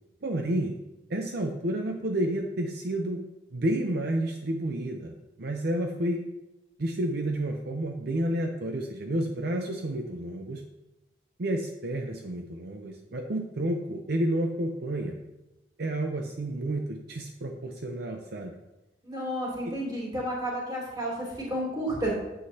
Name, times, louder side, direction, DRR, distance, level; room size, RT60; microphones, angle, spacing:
voice 1, 0.2-0.7 1.1-3.2 3.5-6.2 6.8-10.6 11.4-15.2 15.8-18.5 19.6-19.7, right 1 dB, 65° right, 3 dB, 0.7 m, -30 dB
voice 2, 19.0-22.1, equal, 25° right, -5 dB, 3.0 m, -31 dB
9.5 x 8.0 x 2.8 m, 0.99 s
head